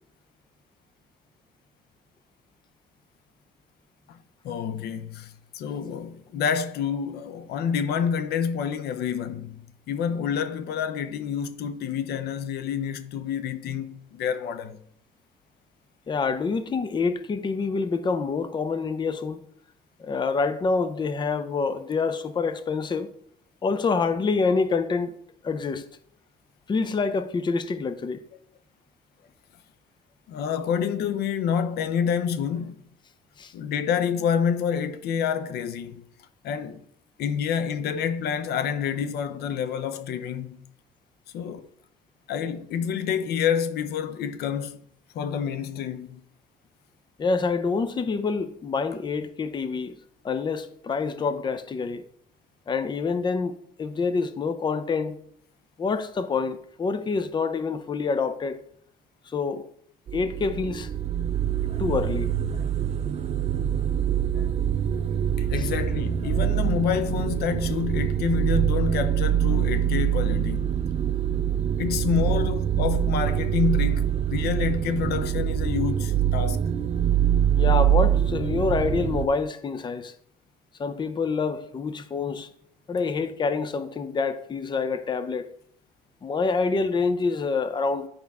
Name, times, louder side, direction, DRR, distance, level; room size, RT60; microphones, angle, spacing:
voice 1, 4.4-14.8 30.3-32.8 33.5-36.0 36.4-36.8 37.2-40.6 41.3-41.7 42.3-44.8 45.1-46.2 61.7-61.8 64.3-64.5 65.4-70.7 71.8-76.7, left 7 dB, 70° left, 0.7 m, -28 dB
voice 2, 16.1-19.4 20.0-23.1 23.6-25.1 25.4-25.9 26.7-28.2 33.4-33.5 47.2-50.0 50.2-52.0 52.7-55.2 55.8-58.6 59.3-59.7 60.1-60.9 61.8-62.3 65.6-65.7 77.6-80.1 80.8-82.5 82.9-85.5 86.2-88.1, left 4 dB, 25° left, 0.6 m, -27 dB
sound 1, 60.1-79.3, right 10 dB, 40° right, 0.5 m, -24 dB
10.0 x 5.3 x 3.5 m
cardioid pair, 110°, 17 cm